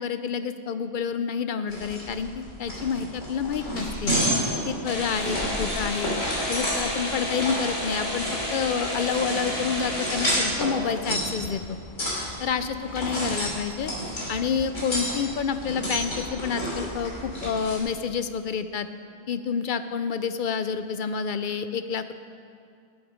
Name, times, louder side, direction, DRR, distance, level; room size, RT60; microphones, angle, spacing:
voice 1, 0.0-4.1 4.7-6.1 6.5-11.8 12.4-13.9 14.3-18.9 19.3-22.1, left 6 dB, 60° left, 11 dB, 0.5 m, -29 dB
sound 1, 1.7-17.8, equal, 85° left, 3.4 m, -31 dB
sound 2, 4.8-10.3, left 1 dB, 30° left, 2.1 m, -31 dB
18.0 x 8.0 x 5.0 m, 2.3 s
omnidirectional pair, 1.2 m